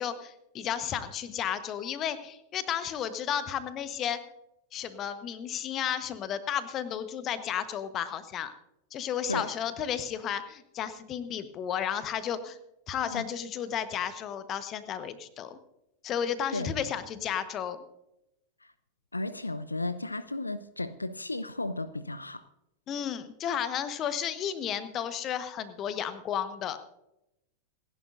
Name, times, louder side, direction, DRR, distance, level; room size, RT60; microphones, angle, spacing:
voice 1, 0.0-4.2 4.7-8.5 8.9-12.6 12.9-15.6 16.0-17.8 22.9-26.8, left 9 dB, 30° left, 12 dB, 1.2 m, -33 dB
voice 2, 19.1-22.4, left 2 dB, 80° left, 14 dB, 0.5 m, -34 dB
27.5 x 11.0 x 2.6 m, 0.86 s
figure-of-eight pair, 90°, 0 cm